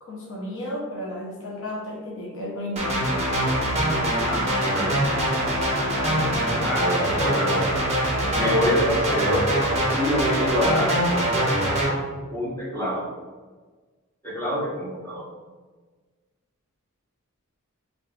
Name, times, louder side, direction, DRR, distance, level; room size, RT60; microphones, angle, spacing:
voice 1, 0.0-3.1, left 1 dB, 60° left, -3 dB, 0.6 m, -33 dB
sound 1, 2.8-11.9, right 1 dB, 30° right, 0.5 m, -23 dB
voice 2, 6.6-7.7 8.3-9.5 9.9-11.0 12.3-13.1 14.2-15.2, equal, 10° left, -9 dB, 1.0 m, -26 dB
4.5 x 2.5 x 2.3 m, 1.4 s
head